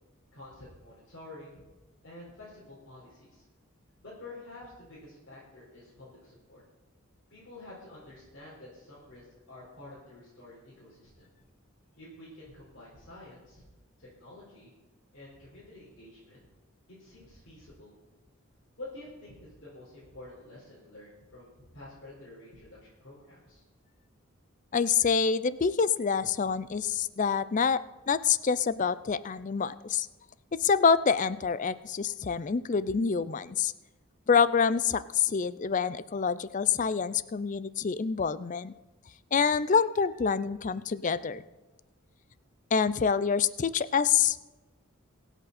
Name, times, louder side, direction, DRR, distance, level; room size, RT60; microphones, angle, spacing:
voice 1, 0.3-1.6 2.0-3.4 4.0-6.6 7.3-11.3 12.0-13.6 14.0-14.7 15.1-16.5 17.0-18.0 18.8-23.6, left 2 dB, 65° left, -9 dB, 4.8 m, -49 dB
voice 2, 24.7-27.8 28.1-30.1 30.6-33.7 34.3-38.7 39.3-41.4 42.7-44.5, left 6 dB, 35° left, 16 dB, 0.4 m, -26 dB
24.0 x 8.1 x 4.2 m, 1.1 s
head